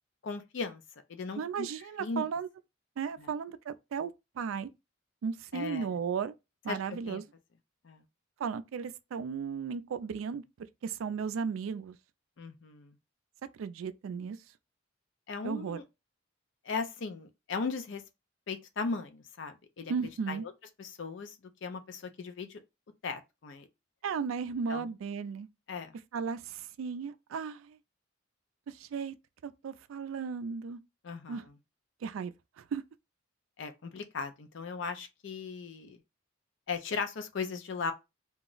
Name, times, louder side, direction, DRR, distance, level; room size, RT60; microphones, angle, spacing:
voice 1, 0.2-0.8 1.1-1.7 2.0-2.3 3.2-3.3 5.5-5.9 6.7-7.2 7.8-8.0 12.4-13.0 15.3-15.8 16.6-18.0 18.5-19.9 20.3-20.5 20.8-22.6 23.0-23.7 24.7-24.9 25.7-25.9 31.0-31.4 33.6-36.0 36.7-37.9, left 4 dB, 60° left, 0.5 m, -37 dB
voice 2, 1.4-2.5 3.0-4.7 5.2-6.3 6.6-7.2 8.4-10.4 10.8-12.0 13.6-14.4 15.4-15.8 19.9-20.5 24.0-25.5 26.1-27.8 28.7-29.2 29.4-30.8 31.3-31.4 32.0-32.3 32.6-32.8, right 6 dB, 80° right, 0.3 m, -35 dB
2.3 x 2.0 x 3.8 m
head